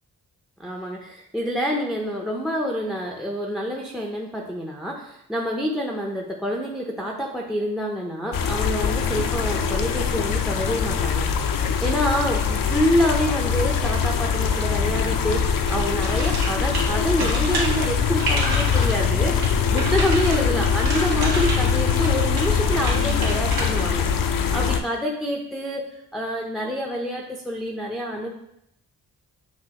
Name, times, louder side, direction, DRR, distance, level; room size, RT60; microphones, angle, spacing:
voice 1, 0.6-11.3 11.8-24.1 24.5-28.3, equal, ahead, 0 dB, 0.5 m, -27 dB
sound 1, 8.3-24.8, left 7 dB, 60° left, 0.5 m, -23 dB
sound 2, 15.7-23.9, right 2 dB, 90° right, 1.1 m, -30 dB
6.1 x 2.5 x 2.8 m, 0.80 s
cardioid pair, 60°, 37 cm